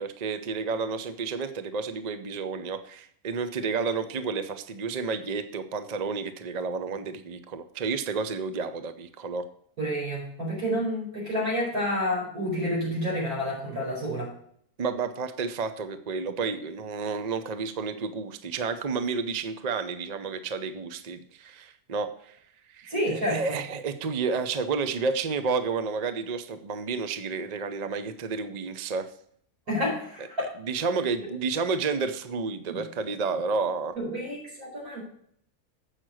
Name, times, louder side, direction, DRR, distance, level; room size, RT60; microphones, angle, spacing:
voice 1, 0.0-9.4 14.8-22.4 22.7-29.1 30.2-33.9, right 4 dB, 45° right, 10 dB, 0.5 m, -31 dB
voice 2, 9.8-14.3 22.9-23.4 29.7-30.5 32.7-32.8 34.0-35.0, equal, 75° right, -4 dB, 5.4 m, -29 dB
8.1 x 5.9 x 6.2 m, 0.66 s
omnidirectional pair, 1.6 m